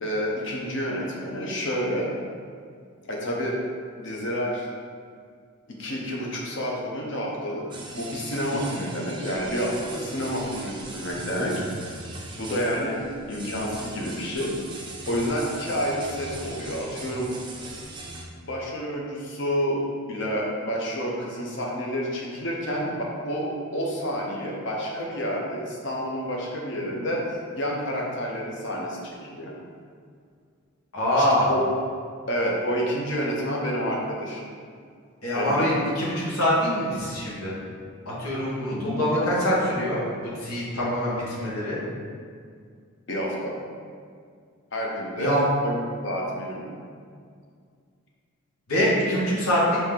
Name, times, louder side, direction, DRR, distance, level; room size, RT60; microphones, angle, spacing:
voice 1, 0.0-2.1 3.1-3.6 4.0-4.7 5.7-11.6 12.3-13.0 13.3-14.5 15.1-17.3 18.4-19.8 20.1-23.5 23.7-27.2 27.6-29.5 31.2-31.6 32.3-34.4 35.3-35.7 38.7-39.0 43.1-43.6 44.7-46.7, equal, 55° left, -2 dB, 0.8 m, -29 dB
sound 1, 7.7-18.3, right 2 dB, 20° right, 0.4 m, -39 dB
voice 2, 8.5-8.8 30.9-31.5 35.2-37.5 38.0-41.8 45.2-45.4 48.7-49.8, equal, 85° left, -6 dB, 1.3 m, -24 dB
5.0 x 2.8 x 3.7 m, 2.1 s
head